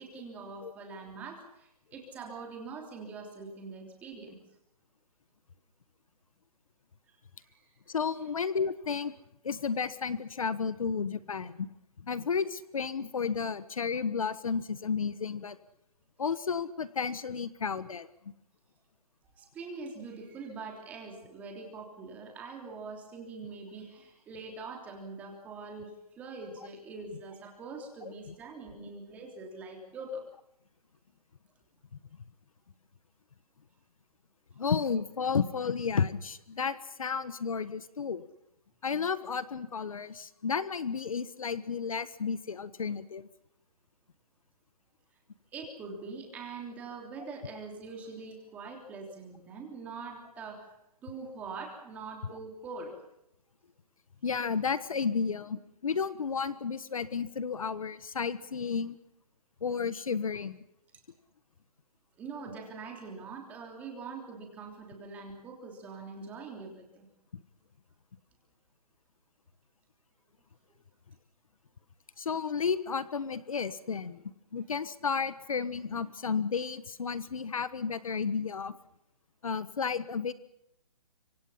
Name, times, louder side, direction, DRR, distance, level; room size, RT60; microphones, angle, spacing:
voice 1, 0.0-4.4 7.1-7.8 19.3-30.2 45.5-50.8 51.0-53.0 62.2-67.1, right 4 dB, 10° right, 2 dB, 3.3 m, -43 dB
voice 2, 7.9-9.1 9.4-11.7 12.0-15.6 16.2-18.3 28.0-28.1 34.6-38.2 38.8-43.3 47.2-47.3 52.3-52.4 54.2-59.0 59.6-60.6 72.2-74.2 74.5-78.7 79.4-80.3, left 6 dB, 60° left, 15 dB, 1.3 m, -32 dB
25.5 x 25.5 x 5.7 m, 0.81 s
hypercardioid pair, 175°, 20 cm